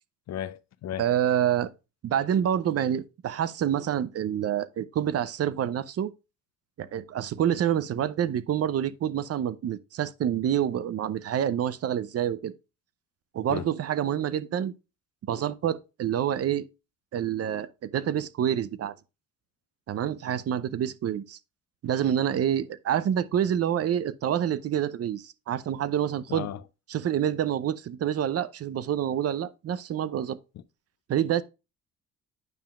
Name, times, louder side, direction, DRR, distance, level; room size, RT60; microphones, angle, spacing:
voice 1, 0.3-1.1 13.5-13.7 26.3-26.6, left 11 dB, 60° left, 0.6 m, -34 dB
voice 2, 1.0-1.7 2.0-6.1 6.8-12.5 13.3-14.7 15.2-16.6 17.1-18.9 19.9-21.4 21.8-26.5 26.9-30.4 31.1-31.4, right 10 dB, 55° right, 0.6 m, -27 dB
9.3 x 5.7 x 2.4 m
cardioid pair, 90°, 30 cm